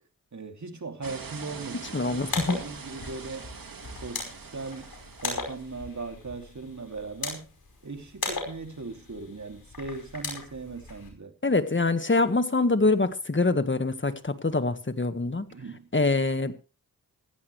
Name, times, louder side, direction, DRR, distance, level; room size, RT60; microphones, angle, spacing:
voice 1, 0.3-2.0 2.4-3.5 4.0-4.9 5.2-7.5 7.8-11.3 15.5-15.9, right 3 dB, 55° right, 2.7 m, -38 dB
sound 1, 1.0-5.8, right 5 dB, 75° right, 2.0 m, -43 dB
voice 2, 1.9-2.6 11.4-15.4 15.9-16.5, left 3 dB, 35° left, 1.7 m, -24 dB
sound 2, 2.1-11.1, left 3 dB, 80° left, 5.1 m, -38 dB
16.0 x 14.0 x 3.3 m
cardioid pair, 40°, 35 cm